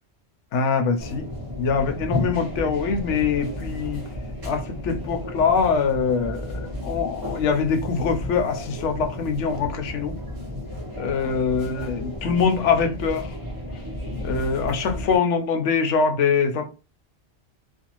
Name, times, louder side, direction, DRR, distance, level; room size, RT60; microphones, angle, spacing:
voice 1, 0.5-1.2 1.6-4.0 4.4-10.1 11.0-13.3 14.2-16.7, left 5 dB, 80° left, 0.9 m, -23 dB
sound 1, 1.0-15.2, left 1 dB, 20° right, 0.7 m, -33 dB
2.5 x 2.3 x 3.0 m
omnidirectional pair, 1.2 m